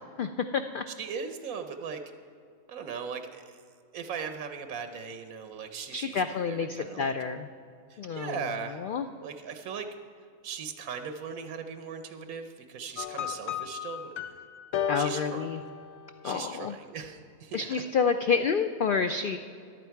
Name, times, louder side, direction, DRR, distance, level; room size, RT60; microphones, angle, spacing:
voice 1, 0.2-0.8 5.9-7.5 8.0-8.4 8.8-9.1 14.9-15.6 16.2-16.8 17.5-19.4, left 5 dB, 90° left, 8 dB, 0.4 m, -29 dB
voice 2, 0.9-2.0 2.7-3.6 3.9-7.1 7.9-8.8 9.2-9.9 10.4-14.1 14.9-15.5 16.2-17.9, right 6 dB, 85° right, 7 dB, 1.2 m, -39 dB
sound 1, 13.0-16.4, left 9 dB, 60° left, 0.8 m, -35 dB
14.5 x 11.0 x 4.6 m, 2.4 s
omnidirectional pair, 1.4 m